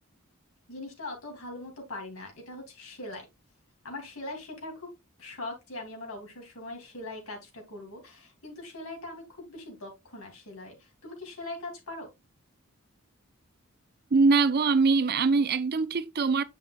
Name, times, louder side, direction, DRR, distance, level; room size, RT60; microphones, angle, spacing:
voice 1, 0.7-3.3 3.8-4.9 5.2-12.1, left 2 dB, 75° left, 2.7 m, -41 dB
voice 2, 14.1-16.4, right 4 dB, 45° right, 0.6 m, -23 dB
8.2 x 5.7 x 2.3 m
head